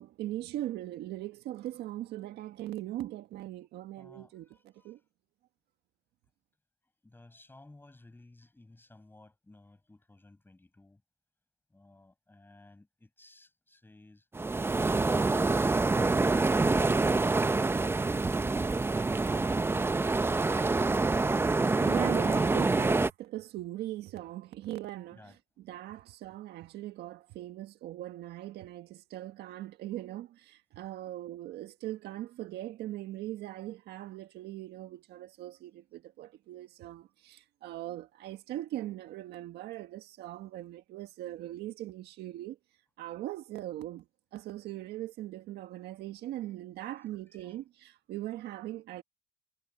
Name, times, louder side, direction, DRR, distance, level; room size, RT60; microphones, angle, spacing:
voice 1, 0.0-4.5 4.8-5.0 21.8-25.2 25.6-42.6 43.0-44.0 44.3-49.0, right 14 dB, 80° right, 1.6 m, -40 dB
voice 2, 3.9-5.0 7.0-11.0 11.7-14.3 25.1-25.4 29.9-30.0 31.0-31.1 46.4-47.6, left 2 dB, 10° left, 7.6 m, -56 dB
sound 1, 14.3-23.1, right 3 dB, 15° right, 0.6 m, -26 dB
cardioid pair, 110°, 17 cm